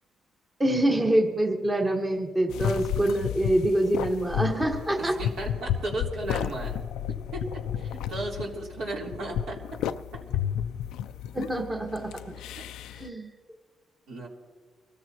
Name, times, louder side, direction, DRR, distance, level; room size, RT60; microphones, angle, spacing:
voice 1, 0.6-5.2 11.3-12.2 12.9-13.3, right 1 dB, 20° right, 3 dB, 1.4 m, -25 dB
sound 1, 2.5-13.1, left 9 dB, 90° left, 0.4 m, -32 dB
voice 2, 5.2-6.7 7.3-7.4 7.8-9.6 12.6-12.7 14.1-14.3, right 2 dB, 70° right, -2 dB, 3.5 m, -34 dB
25.0 x 14.0 x 2.9 m, 1.4 s
cardioid pair, 90°, 0 cm